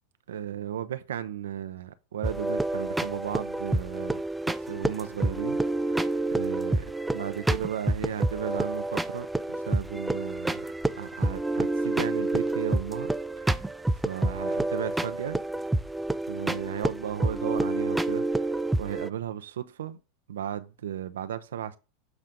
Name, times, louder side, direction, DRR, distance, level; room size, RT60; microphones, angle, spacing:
voice 1, 0.3-5.6 5.9-10.7 11.0-13.1 13.4-13.7 14.0-15.4 16.3-18.2 18.8-20.0 20.3-21.8, right 10 dB, 80° right, 0.6 m, -35 dB
sound 1, 2.2-19.1, right 2 dB, 5° right, 0.4 m, -28 dB
8.0 x 3.6 x 5.1 m
hypercardioid pair, 95°, 0 cm